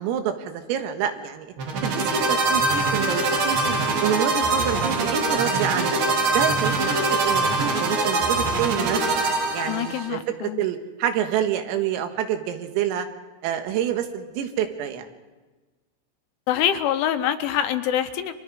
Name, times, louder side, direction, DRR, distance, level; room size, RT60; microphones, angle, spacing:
voice 1, 0.0-1.5 1.8-3.7 4.0-6.0 6.3-9.0 9.5-13.1 13.4-15.1, right 10 dB, 85° right, 7 dB, 4.1 m, -27 dB
sound 1, 1.6-10.1, right 3 dB, 55° right, 3.1 m, -23 dB
voice 2, 9.6-10.6 16.5-18.3, left 10 dB, 80° left, 9 dB, 3.0 m, -25 dB
29.5 x 24.0 x 4.8 m, 1.2 s
omnidirectional pair, 5.9 m